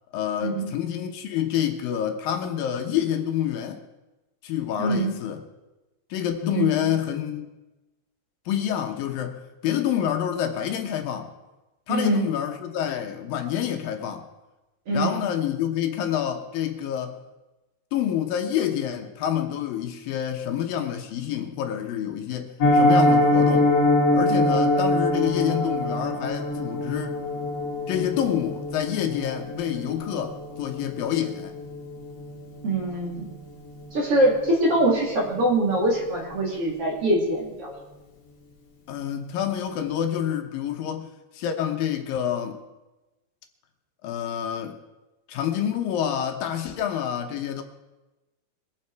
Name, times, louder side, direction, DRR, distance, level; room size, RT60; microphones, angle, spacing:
voice 1, 0.1-3.8 4.4-5.4 6.1-7.5 8.5-9.4 9.6-11.3 11.9-14.3 14.9-17.2 17.9-23.7 24.1-27.2 27.9-31.6 38.9-41.1 41.3-42.6 44.0-44.8 45.3-47.6, left 10 dB, 75° left, 2.6 m, -27 dB
voice 2, 4.8-5.1 6.5-6.9 11.9-12.2 14.9-15.2 32.6-33.3 33.9-37.7, right 1 dB, 40° right, 3.1 m, -23 dB
Piano, 22.6-33.5 33.8-34.0 34.3-34.4 34.8-35.0 35.4-35.5, left 1 dB, 45° left, 3.1 m, -24 dB
22.5 x 8.7 x 4.6 m
omnidirectional pair, 4.3 m